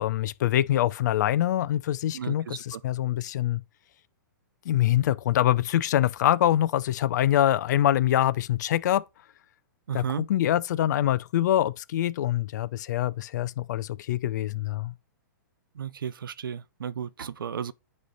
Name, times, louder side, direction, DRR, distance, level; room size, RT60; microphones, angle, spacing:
voice 1, 0.0-3.6 4.6-9.0 9.9-14.9, left 12 dB, 60° left, 0.6 m, -24 dB
voice 2, 2.1-2.8 9.9-10.3 15.7-17.7, right 8 dB, 90° right, 0.6 m, -34 dB
9.6 x 3.2 x 4.0 m
hypercardioid pair, 140°, 11 cm